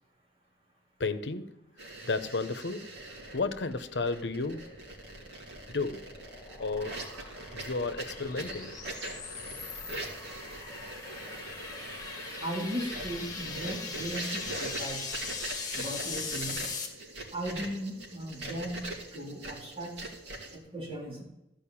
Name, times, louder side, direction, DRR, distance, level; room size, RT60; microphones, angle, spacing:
voice 1, 1.0-1.6 2.0-2.9 3.3-4.7 5.7-6.1 6.6-7.1 7.5-8.7, left 3 dB, 85° left, 0.9 m, -32 dB
sound 1, 1.8-20.6, right 2 dB, 90° right, 2.6 m, -42 dB
sound 2, 5.3-16.9, left 4 dB, 20° left, 1.9 m, -40 dB
voice 2, 12.4-15.2 15.7-16.6 17.3-20.0 20.5-21.2, right 1 dB, 35° right, 3.7 m, -37 dB
14.0 x 5.2 x 8.7 m
head